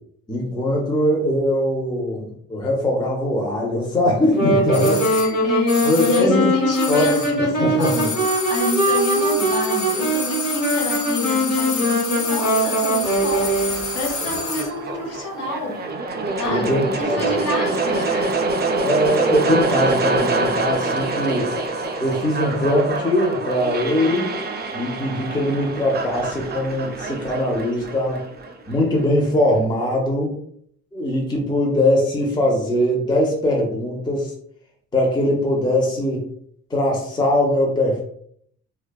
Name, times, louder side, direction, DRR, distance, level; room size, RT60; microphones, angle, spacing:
voice 1, 0.3-5.0 5.8-6.5 6.9-7.1 7.3-8.1 16.5-17.2 18.8-21.5 22.0-24.3 24.7-28.2 28.7-30.3 30.9-34.3 34.9-36.3 36.7-38.0, left 1 dB, 15° left, -2 dB, 0.6 m, -21 dB
Wind instrument woodwind instrument, 4.2-13.9, equal, 30° left, 1.0 m, -21 dB
sound 1, 4.7-7.5 7.7-14.8 15.0-15.1, left 4 dB, 90° left, 0.8 m, -29 dB
voice 2, 4.8-15.8 16.4-18.4, left 1 dB, 55° left, -2 dB, 1.0 m, -28 dB
sound 2, 13.0-29.0, right 3 dB, 35° right, 0.4 m, -26 dB
2.6 x 2.2 x 2.2 m, 0.65 s
cardioid pair, 90°, 30 cm